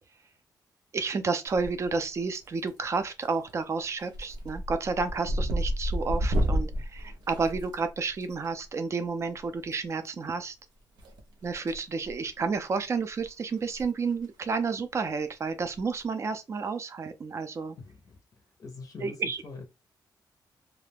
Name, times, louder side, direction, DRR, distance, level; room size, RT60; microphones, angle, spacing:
voice 1, 0.9-10.6 11.4-17.8 19.0-19.4, right 4 dB, 40° right, 0.4 m, -31 dB
sound 1, 1.5-2.0 2.3-2.9 3.2-3.5 3.8-8.2 9.6-9.7 11.0-11.8 12.1-12.3 12.8-12.9 13.2-13.3 13.6-13.8 14.1-14.2 15.7-16.0, equal, 85° right, 0.7 m, -31 dB
voice 2, 17.8-18.2 18.6-19.7, left 3 dB, 50° left, 0.5 m, -43 dB
2.3 x 2.1 x 3.3 m
cardioid pair, 115°, 7 cm